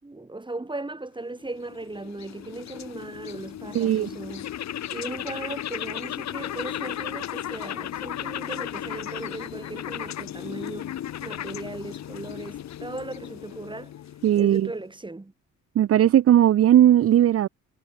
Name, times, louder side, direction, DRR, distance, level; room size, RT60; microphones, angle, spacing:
voice 1, 0.0-4.6 4.9-13.9 14.3-15.3, right 2 dB, 15° right, 5.1 m, -37 dB
sound 1, 1.4-14.8, left 11 dB, 65° left, 1.4 m, -35 dB
voice 2, 3.7-4.1 14.2-14.7 15.8-17.5, right 11 dB, 50° right, 0.7 m, -18 dB
cardioid pair, 90°, 30 cm